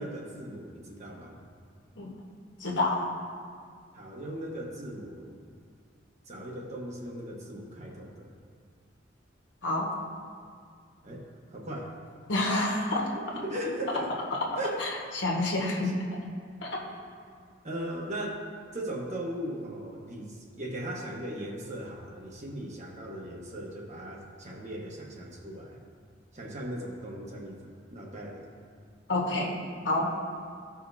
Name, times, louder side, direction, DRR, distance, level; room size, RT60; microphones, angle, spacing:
voice 1, 0.0-1.4 3.9-5.3 6.3-8.3 11.0-11.2 11.5-12.0 13.1-14.1 14.6-14.8 15.8-15.9 17.6-18.4 18.7-25.8 26.3-27.6 27.9-28.5, right 1 dB, 40° right, -1 dB, 1.2 m, -38 dB
voice 2, 2.6-3.1 9.6-9.9 12.3-13.1 14.8-15.9 16.6-16.8 29.1-29.6 29.8-30.1, left 2 dB, 75° left, -2 dB, 1.4 m, -28 dB
14.5 x 5.1 x 2.7 m, 2.1 s
head